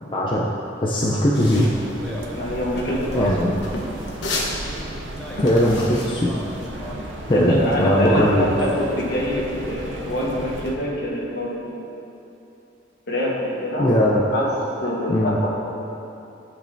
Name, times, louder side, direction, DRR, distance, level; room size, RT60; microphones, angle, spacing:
voice 1, 0.0-0.5 0.8-1.7 3.1-3.5 5.4-6.3 7.3-8.4 13.8-14.2 15.1-15.4, equal, 25° left, -4 dB, 0.5 m, -19 dB
sound 1, 1.3-6.9, left 2 dB, 75° left, 1.0 m, -33 dB
ambience rain porch, 1.4-10.8, right 2 dB, 90° right, 0.6 m, -35 dB
Speech, 1.5-3.6 4.5-5.6 6.1-7.2 7.6-8.2, left 1 dB, 5° left, 0.9 m, -39 dB
voice 2, 2.3-3.2 6.7-7.0 7.3-11.9 13.1-13.9 14.3-14.5 14.8-15.5, left 1 dB, 60° left, -3 dB, 1.2 m, -25 dB
12.0 x 5.3 x 2.7 m, 2.8 s
head